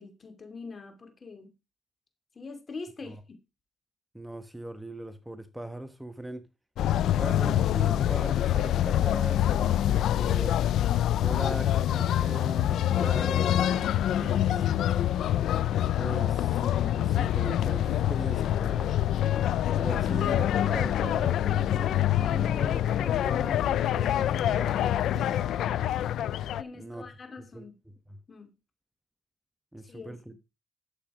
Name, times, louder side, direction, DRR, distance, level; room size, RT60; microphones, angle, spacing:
voice 1, 0.0-1.5 2.3-3.4 26.6-27.7 28.3-28.5 29.9-30.3, left 4 dB, 35° left, 2.6 m, -44 dB
voice 2, 4.1-6.5 7.1-10.6 11.1-14.7 15.9-18.9 19.8-25.5 26.7-27.0 27.5-27.6 28.1-28.2 29.7-30.3, right 1 dB, 5° right, 1.1 m, -39 dB
sound 1, 6.8-26.6, left 11 dB, 75° left, 0.5 m, -26 dB
11.5 x 7.4 x 4.9 m
cardioid pair, 90°, 0 cm